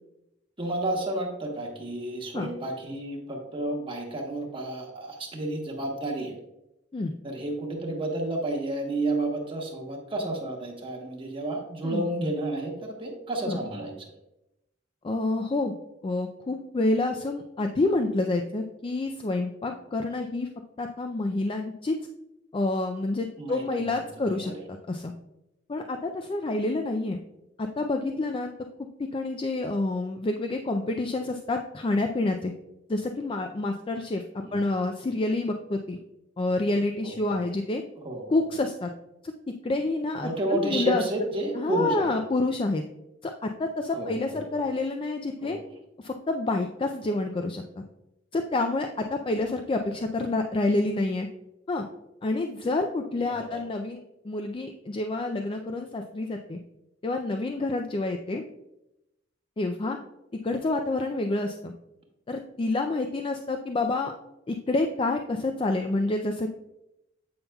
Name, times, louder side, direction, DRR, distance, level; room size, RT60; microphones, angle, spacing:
voice 1, 0.6-6.4 7.2-13.9 23.4-23.9 24.4-24.5 34.4-34.6 37.0-37.1 38.0-38.2 40.2-42.1 43.9-44.7 45.4-45.6 53.2-53.6, right 2 dB, 30° right, -1 dB, 1.0 m, -31 dB
voice 2, 11.8-12.3 13.5-13.6 15.0-15.7 16.0-20.5 20.8-22.0 22.5-25.1 25.7-27.2 27.6-28.5 28.8-32.5 32.9-34.2 34.5-36.0 36.4-37.8 38.3-38.9 39.2-41.0 41.6-42.8 43.2-45.6 46.0-47.8 48.3-51.3 51.7-51.8 52.2-56.6 57.0-58.4 59.6-60.0 60.4-61.7 62.3-64.1 64.5-66.5, left 2 dB, 30° left, 5 dB, 0.4 m, -28 dB
8.6 x 5.4 x 2.3 m, 0.88 s
head